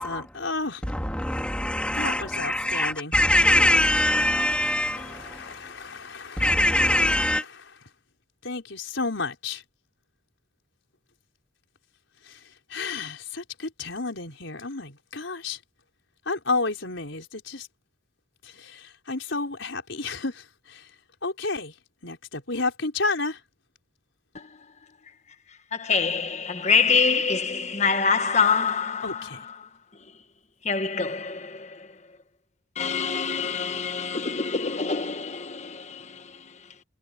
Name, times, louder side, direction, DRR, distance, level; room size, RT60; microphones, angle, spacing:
voice 1, 0.0-0.8 1.9-3.1 4.5-7.3 8.4-9.6 12.2-15.6 16.3-17.7 18.4-20.9 21.2-21.7 22.0-23.4 29.0-29.4, left 3 dB, 70° left, 4.6 m, -32 dB
voice 2, 0.8-5.6 6.4-7.4, left 1 dB, 5° left, 2.9 m, -23 dB
voice 3, 25.7-29.2 30.6-31.8 32.8-36.2, left 5 dB, 35° left, 1.4 m, -25 dB
head